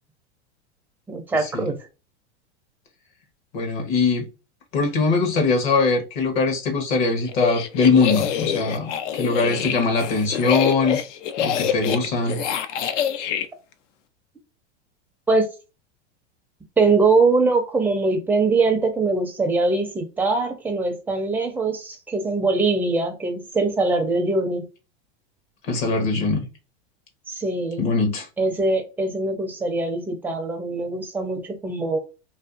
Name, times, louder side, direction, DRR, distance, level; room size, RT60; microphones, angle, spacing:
voice 1, 1.1-1.8 15.3-15.5 16.8-24.7 27.3-27.9 28.4-32.0, right 3 dB, 5° right, 0.4 m, -22 dB
voice 2, 3.5-4.2 4.7-11.0 11.4-12.4 25.7-26.5 27.8-28.3, left 4 dB, 50° left, 0.9 m, -21 dB
sound 1, 7.3-13.5, left 9 dB, 80° left, 0.5 m, -26 dB
2.6 x 2.4 x 2.4 m
hypercardioid pair, 115°, 36 cm